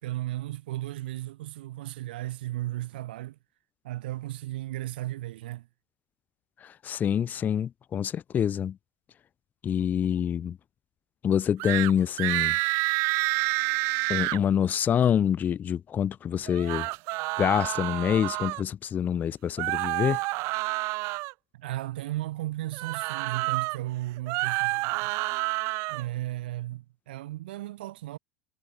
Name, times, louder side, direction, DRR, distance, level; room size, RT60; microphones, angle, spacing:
voice 1, 0.0-3.4 3.8-5.7 21.5-25.1 25.9-28.2, right 16 dB, 75° right, 3.9 m, -35 dB
voice 2, 6.6-8.7 9.6-10.6 11.2-12.6 14.1-16.9 17.4-20.2, left 9 dB, 35° left, 0.5 m, -26 dB
sound 1, 11.6-11.9 12.2-14.4 16.5-18.6 19.6-21.3 22.7-23.8 24.2-26.1, right 26 dB, 60° right, 0.7 m, -28 dB
hypercardioid pair, 80°, 5 cm